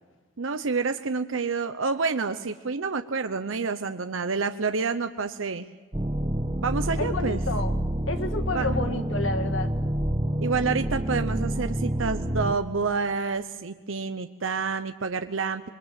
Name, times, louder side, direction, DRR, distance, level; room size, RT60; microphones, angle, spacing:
voice 1, 0.4-5.7 6.6-7.4 8.5-8.7 10.4-15.7, right 4 dB, 85° right, 9 dB, 0.8 m, -28 dB
sound 1, 5.9-12.5, right 1 dB, 20° right, 1.2 m, -28 dB
voice 2, 7.0-7.8 8.1-9.7, left 3 dB, 80° left, 8 dB, 1.8 m, -30 dB
26.5 x 22.0 x 7.6 m, 1.4 s
head